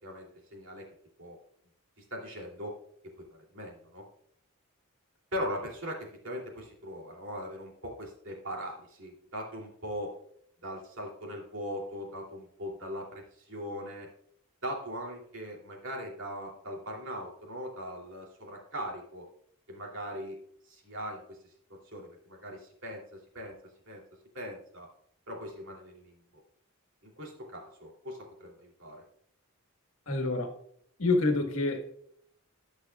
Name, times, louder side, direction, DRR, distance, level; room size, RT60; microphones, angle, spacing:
voice 1, 0.0-0.9 1.2-1.4 2.0-2.7 3.3-4.0 5.3-10.1 10.6-14.1 14.6-19.2 19.7-20.4 20.7-21.4 21.9-23.0 23.3-23.5 23.9-24.0 24.3-24.9 25.3-26.2 27.0-29.0, equal, 60° right, 2.9 m, -40 dB
voice 2, 30.1-30.5 31.0-32.0, left 2 dB, 75° left, 1.6 m, -27 dB
19.0 x 6.3 x 2.4 m
head